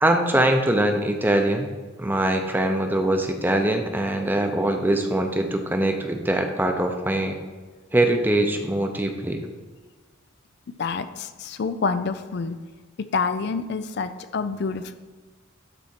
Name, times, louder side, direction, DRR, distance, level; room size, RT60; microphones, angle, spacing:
voice 1, 0.0-1.7 2.0-7.4 7.9-9.5, right 1 dB, 10° right, 4 dB, 0.7 m, -22 dB
voice 2, 10.8-12.6 13.0-14.9, left 4 dB, 60° left, 10 dB, 0.4 m, -27 dB
12.0 x 4.3 x 4.4 m, 1.3 s
head